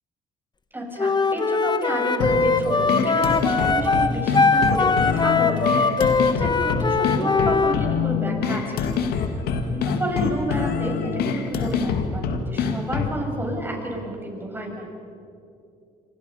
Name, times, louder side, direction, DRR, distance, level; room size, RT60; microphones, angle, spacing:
voice 1, 0.7-14.9, right 1 dB, 15° right, 0 dB, 7.2 m, -31 dB
Wind instrument woodwind instrument, 1.0-7.8, left 4 dB, 25° left, 1.6 m, -21 dB
sound 1, 2.2-13.2, left 6 dB, 75° left, 2.1 m, -25 dB
28.5 x 25.0 x 5.7 m, 2.6 s
supercardioid pair, 85°, 16 cm